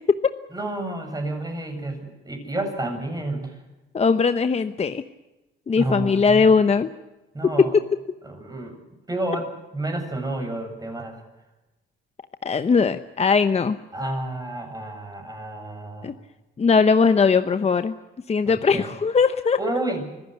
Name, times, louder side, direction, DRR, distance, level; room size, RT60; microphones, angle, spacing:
voice 1, 0.5-3.6 5.8-6.5 7.3-7.7 8.2-8.8 9.1-11.2 13.9-16.1 18.5-18.9 19.6-20.1, right 2 dB, 20° right, 4 dB, 7.4 m, -30 dB
voice 2, 3.9-5.0 5.7-6.9 12.4-13.8 16.0-16.1 16.6-18.0 18.3-19.6, left 5 dB, 30° left, 10 dB, 0.9 m, -19 dB
25.5 x 15.0 x 9.4 m, 1.1 s
cardioid pair, 90°, 20 cm